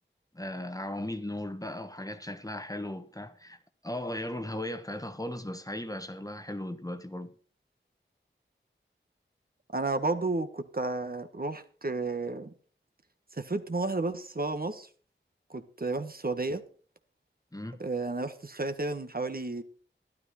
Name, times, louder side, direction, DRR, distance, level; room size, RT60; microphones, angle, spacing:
voice 1, 0.3-7.3 17.5-17.8, left 1 dB, 15° left, 1.3 m, -37 dB
voice 2, 9.7-12.5 13.3-14.9 15.5-16.6 17.8-19.6, right 3 dB, 45° right, 1.3 m, -32 dB
12.5 x 12.0 x 4.3 m
wide cardioid pair, 60°, 20 cm